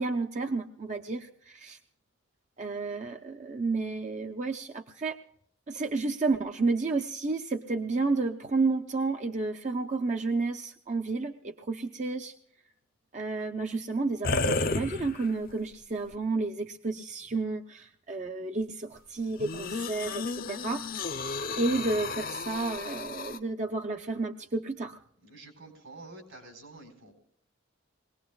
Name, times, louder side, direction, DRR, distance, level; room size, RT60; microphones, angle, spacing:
voice 1, 0.0-1.8 2.6-5.2 5.7-12.3 13.1-21.0 21.6-25.0, right 3 dB, 35° right, 5 dB, 0.5 m, -31 dB
sound 1, 14.2-15.5 16.1-16.2 19.4-23.4, left 3 dB, 45° left, 0.6 m, -32 dB
voice 2, 25.2-27.1, right 2 dB, 75° right, 3 dB, 4.2 m, -48 dB
23.0 x 18.5 x 2.3 m, 0.67 s
head